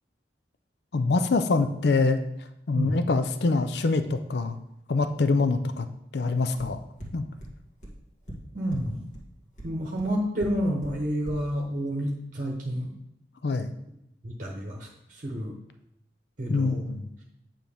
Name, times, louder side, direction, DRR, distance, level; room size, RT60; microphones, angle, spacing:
voice 1, 0.9-2.2 2.7-4.6 4.9-5.9 6.1-6.8 7.1-7.2 13.4-13.7 16.5-17.1, left 3 dB, 65° left, 9 dB, 0.5 m, -24 dB
sound 1, 6.6-6.7 7.0-7.1 7.4-7.5 7.8-7.9 8.3-8.4 8.7-8.8 9.1-9.2 9.6-9.7 10.0-10.1 10.4-10.5 10.8-10.9 11.3-11.4, right 1 dB, 45° left, 1.7 m, -39 dB
voice 2, 8.5-9.0 9.6-12.9 14.2-15.5 16.4-16.8, equal, 45° right, -1 dB, 1.0 m, -29 dB
9.3 x 5.8 x 3.5 m, 0.82 s
head